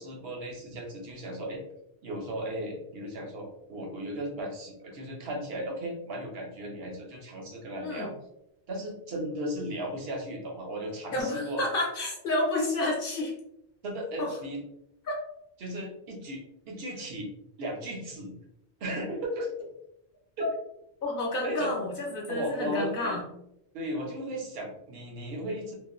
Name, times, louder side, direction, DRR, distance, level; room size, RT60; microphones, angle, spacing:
voice 1, 0.0-1.6 2.0-8.1 8.7-11.6 13.8-14.6 15.6-17.3 17.6-18.4 18.8-19.7 20.4-20.5 21.4-21.7 22.3-23.1 23.7-25.7, equal, 60° right, 0 dB, 0.9 m, -35 dB
voice 2, 11.1-13.3 14.2-14.4 15.1-15.2 20.4-20.5 21.0-23.3, left 2 dB, 55° left, -1 dB, 0.8 m, -30 dB
2.9 x 2.2 x 2.3 m, 0.79 s
omnidirectional pair, 1.2 m